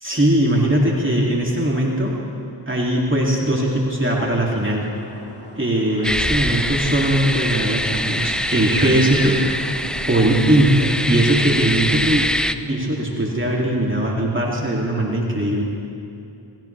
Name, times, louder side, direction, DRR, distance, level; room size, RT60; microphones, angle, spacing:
voice 1, 0.0-2.2 2.7-4.9 5.5-9.4 10.1-12.2 12.7-15.6, right 1 dB, 25° right, -3 dB, 2.6 m, -20 dB
sound 1, 4.7-10.1, left 1 dB, 20° left, 2.2 m, -35 dB
sound 2, 6.0-12.5, equal, ahead, 0.5 m, -24 dB
19.5 x 16.0 x 3.3 m, 2.7 s
cardioid pair, 40°, 49 cm